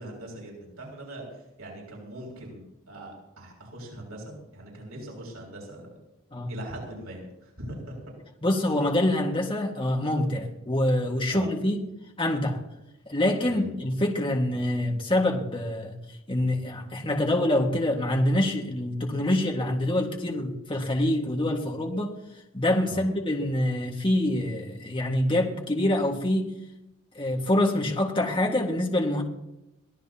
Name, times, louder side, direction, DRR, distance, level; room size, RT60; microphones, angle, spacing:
voice 1, 0.0-5.9 6.5-7.9 11.3-11.5 13.4-13.7 22.9-23.1, right 1 dB, 85° right, -1 dB, 6.7 m, -41 dB
voice 2, 8.4-11.8 12.2-12.6 13.1-16.0 16.3-22.2 22.5-26.6 27.2-29.2, left 1 dB, 25° left, 0 dB, 1.8 m, -25 dB
23.5 x 17.0 x 2.9 m, 0.89 s
head